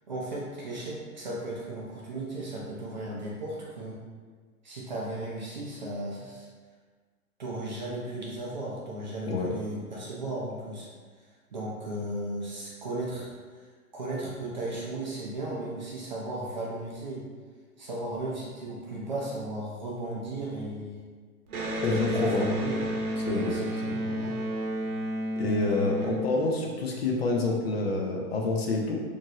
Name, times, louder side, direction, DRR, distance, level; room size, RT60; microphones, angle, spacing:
voice 1, 0.1-4.0 4.6-6.5 7.4-10.9 11.5-13.7 13.9-17.2 17.8-21.0 21.8-22.8 23.3-24.4, right 1 dB, 35° right, -5 dB, 0.4 m, -35 dB
Electric guitar, 21.5-27.0, right 1 dB, 75° right, 0.8 m, -31 dB
voice 2, 21.8-22.6 23.2-23.6 23.9-24.1 25.4-29.0, left 3 dB, 45° left, -1 dB, 0.4 m, -28 dB
3.0 x 2.5 x 2.6 m, 1.5 s
hypercardioid pair, 140°, 45 cm